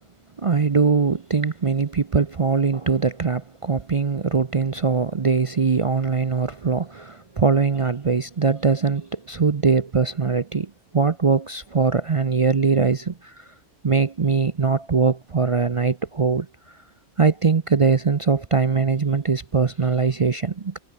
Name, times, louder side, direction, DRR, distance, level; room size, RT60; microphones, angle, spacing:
voice 1, 0.4-13.5 13.8-16.5 17.2-20.8, right 5 dB, 35° right, 0.5 m, -21 dB
omnidirectional pair, 1.2 m